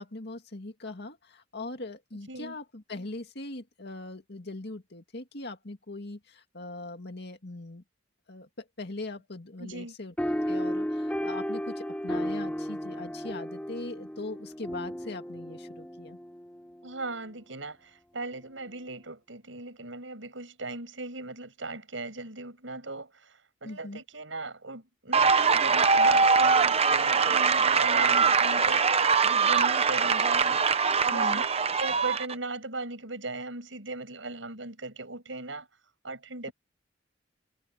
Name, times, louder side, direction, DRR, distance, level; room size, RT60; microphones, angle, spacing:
voice 1, 0.0-7.8 8.3-16.2 23.6-24.0 31.1-31.4, left 2 dB, 60° left, 2.2 m, -40 dB
voice 2, 9.6-9.9 16.8-30.7 31.0-31.4 31.8-35.7 36.0-36.5, right 2 dB, 80° right, 6.6 m, -38 dB
sound 1, 10.2-17.1, equal, 5° left, 4.3 m, -34 dB
sound 2, 25.1-32.3, right 5 dB, 35° right, 0.9 m, -23 dB
head